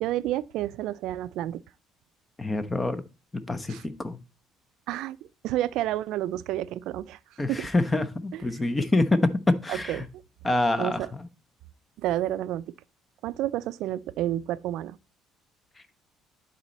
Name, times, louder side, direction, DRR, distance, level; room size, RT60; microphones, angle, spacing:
voice 1, 0.0-1.6 3.7-3.8 4.9-5.2 5.4-7.2 7.5-7.7 8.3-8.6 9.7-10.1 10.8-11.1 12.0-12.7 13.2-15.0, right 13 dB, 75° right, 0.4 m, -30 dB
voice 2, 2.4-3.0 3.5-4.2 7.4-10.0 10.4-11.3, left 2 dB, 20° left, 0.9 m, -26 dB
11.0 x 4.2 x 4.1 m
cardioid pair, 100°, 0 cm